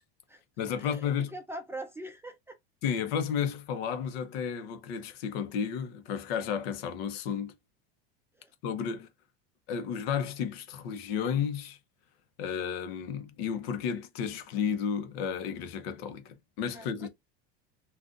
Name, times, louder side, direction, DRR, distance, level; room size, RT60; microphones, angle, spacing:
voice 1, 0.6-1.3 2.8-7.5 8.6-9.1 9.7-11.8 12.4-17.1, left 7 dB, 70° left, 1.0 m, -32 dB
voice 2, 1.3-2.6 8.4-8.5 16.7-17.1, right 1 dB, 10° right, 0.3 m, -42 dB
3.8 x 2.5 x 2.5 m
supercardioid pair, 130°, 31 cm